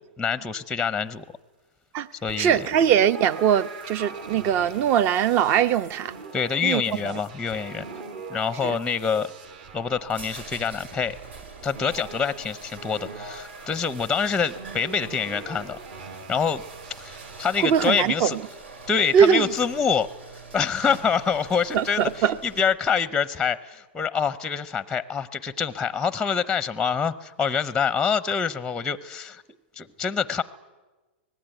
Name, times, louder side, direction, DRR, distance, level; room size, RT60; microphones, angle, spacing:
voice 1, 0.2-1.3 2.2-2.7 6.3-7.9 8.3-9.3 9.7-11.2 11.6-15.8 16.3-16.6 17.0-18.4 18.9-20.1 20.5-29.4 29.8-30.4, left 6 dB, 10° left, 0.7 m, -26 dB
sound 1, 2.3-18.0, right 4 dB, 55° right, 5.1 m, -42 dB
voice 2, 2.4-6.1 6.6-7.2 8.6-8.7 17.6-18.3 19.1-19.4 21.7-22.4, right 8 dB, 40° right, 0.9 m, -21 dB
sound 2, 9.9-23.0, right 4 dB, 75° right, 4.6 m, -45 dB
25.0 x 19.0 x 9.1 m
hypercardioid pair, 135°, 6 cm